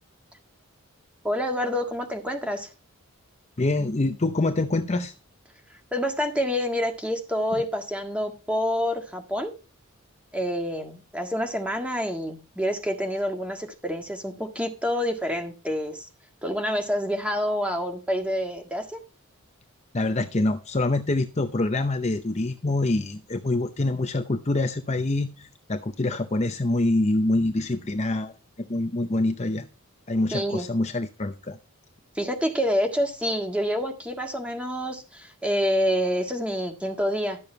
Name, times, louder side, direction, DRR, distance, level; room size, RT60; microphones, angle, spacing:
voice 1, 1.2-2.7 5.9-9.5 10.3-16.1 16.4-19.0 30.3-30.7 32.1-37.5, equal, 5° right, 4 dB, 1.6 m, -27 dB
voice 2, 3.6-5.1 19.9-29.7 30.1-31.6, left 2 dB, 30° left, 7 dB, 0.7 m, -25 dB
12.5 x 7.0 x 4.4 m, 0.32 s
head